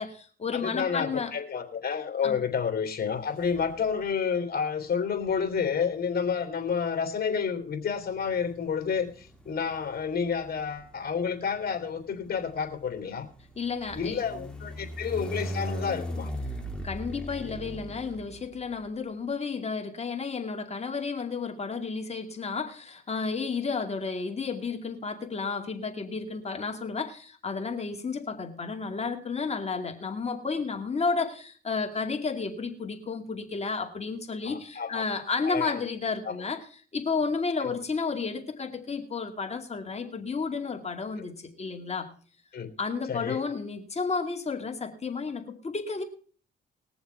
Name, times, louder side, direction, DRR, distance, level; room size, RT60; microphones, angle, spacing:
voice 1, 0.0-1.3 2.2-2.4 13.6-14.2 16.8-42.1 42.8-46.0, left 4 dB, 35° left, 3 dB, 2.4 m, -32 dB
voice 2, 0.5-13.3 13.9-16.3 34.4-35.1 35.4-35.8 36.2-36.3 37.6-37.7 41.2-41.3 42.5-42.7 43.1-43.4, left 6 dB, 50° left, 5 dB, 2.9 m, -30 dB
sound 1, 3.4-4.1 5.2-18.9, equal, 5° left, 2.1 m, -40 dB
21.0 x 7.1 x 4.5 m, 0.42 s
cardioid pair, 90°, 20 cm